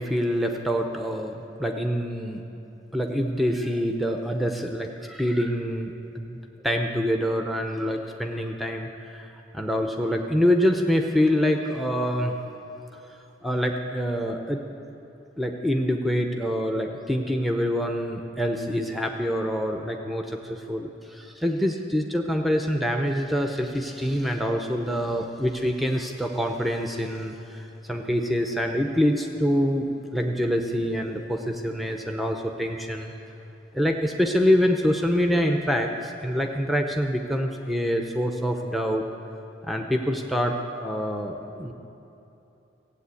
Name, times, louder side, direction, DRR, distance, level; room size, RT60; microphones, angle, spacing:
voice 1, 0.0-2.4 2.9-6.4 6.6-9.3 9.5-12.4 13.4-14.6 15.4-33.1 33.7-39.0 39.6-41.7, equal, ahead, 3 dB, 0.6 m, -26 dB
15.5 x 8.3 x 8.3 m, 2.9 s
head